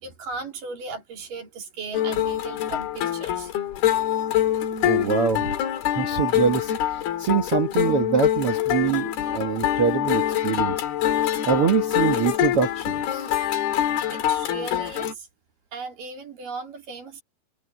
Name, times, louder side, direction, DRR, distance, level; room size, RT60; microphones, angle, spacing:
voice 1, 0.0-3.5 10.5-10.6 14.1-15.3 15.7-17.2, right 4 dB, 50° right, 4.4 m, -37 dB
sound 1, 1.9-15.1, left 11 dB, 65° left, 3.5 m, -25 dB
voice 2, 4.8-5.5 5.9-10.8 11.4-13.3, right 6 dB, 80° right, 1.2 m, -24 dB
omnidirectional pair, 5.1 m